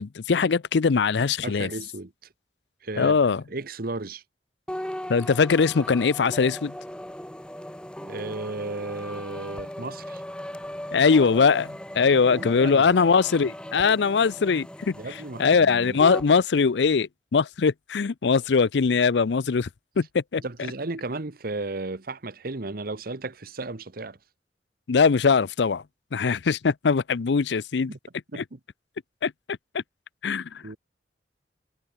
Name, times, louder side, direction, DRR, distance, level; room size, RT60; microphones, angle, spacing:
voice 1, 0.0-1.7 3.0-3.4 5.1-6.7 10.9-15.0 15.4-19.7 20.0-20.4 24.9-25.8 26.1-27.9 28.4-28.5 29.2-29.3 29.7-29.8 30.2-30.5, left 5 dB, 75° left, 0.5 m, -21 dB
voice 2, 1.4-2.1 2.8-3.2 3.5-4.2 8.0-10.2 12.4-12.9 14.9-16.0 20.4-24.2 27.9-28.0 28.3-28.6 30.6-30.8, right 2 dB, 55° right, 1.2 m, -34 dB
sound 1, 4.7-16.3, equal, 5° left, 1.8 m, -38 dB
head